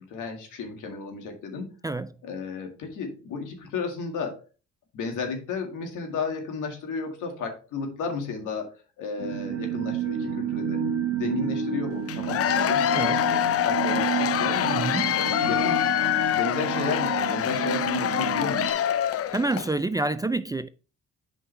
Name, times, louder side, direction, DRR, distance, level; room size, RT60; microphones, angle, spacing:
voice 1, 0.0-1.7 2.2-4.4 4.9-8.7 9.0-10.8 11.1-14.7 15.1-15.9 16.3-18.9, left 4 dB, 85° left, 2.1 m, -33 dB
sound 1, 9.2-18.7, right 7 dB, 55° right, 1.2 m, -30 dB
Cheering / Applause / Crowd, 12.1-19.7, left 11 dB, 50° left, 0.5 m, -25 dB
voice 2, 14.7-15.0 19.3-20.7, right 2 dB, 15° right, 0.3 m, -27 dB
8.5 x 5.4 x 3.4 m
cardioid pair, 90°, 30 cm